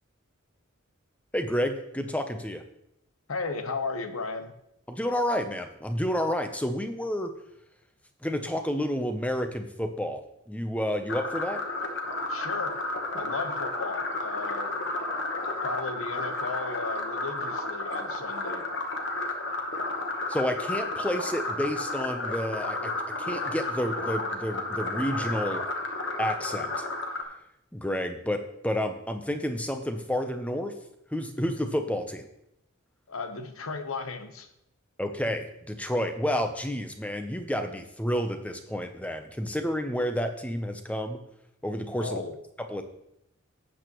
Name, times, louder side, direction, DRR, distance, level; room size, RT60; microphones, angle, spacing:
voice 1, 1.3-2.6 4.9-7.3 8.2-10.2 10.5-11.6 20.3-22.9 23.2-25.6 26.2-26.9 27.7-30.7 31.1-32.3 35.0-41.2 41.6-42.2 42.7-42.8, equal, 5° left, 7 dB, 0.7 m, -30 dB
voice 2, 3.3-4.5 12.3-12.8 13.1-14.9 15.6-18.6 33.1-34.5 42.0-42.4, left 4 dB, 85° left, 8 dB, 1.0 m, -35 dB
sound 1, 11.1-27.2, left 2 dB, 55° left, 1.2 m, -32 dB
12.5 x 8.2 x 3.1 m, 0.80 s
head